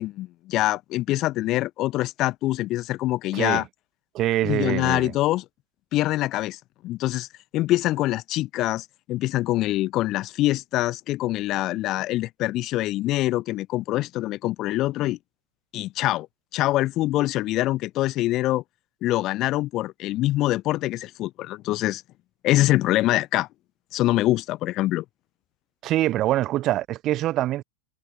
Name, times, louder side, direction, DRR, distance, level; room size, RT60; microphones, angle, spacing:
voice 1, 0.0-3.6 4.4-5.4 5.9-7.3 7.5-15.2 15.7-16.3 16.5-18.6 19.0-22.0 22.4-23.5 23.9-25.0, left 16 dB, 35° left, 0.3 m, -24 dB
voice 2, 3.3-3.6 4.1-5.1 25.8-27.6, right 14 dB, 35° right, 0.4 m, -24 dB
figure-of-eight pair, 90°, 0 cm